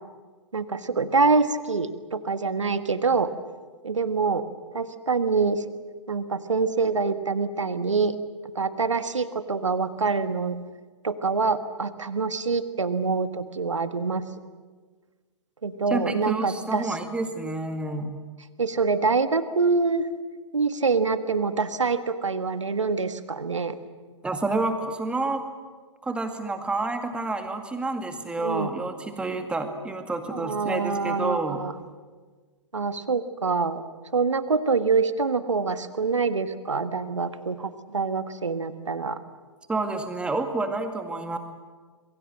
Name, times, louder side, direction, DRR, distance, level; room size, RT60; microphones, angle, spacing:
voice 1, 0.5-3.3 3.8-4.4 4.7-5.7 6.1-8.2 8.6-10.6 11.0-14.2 15.6-16.9 18.6-20.1 20.5-23.8 28.4-28.7 30.3-31.7 32.7-33.8 34.1-39.2, right 4 dB, 75° right, 11 dB, 1.7 m, -25 dB
voice 2, 15.9-18.1 24.2-25.4 26.0-31.6 39.7-41.4, right 2 dB, 5° right, 7 dB, 2.1 m, -29 dB
27.0 x 22.0 x 7.7 m, 1.4 s
figure-of-eight pair, 115°, 16 cm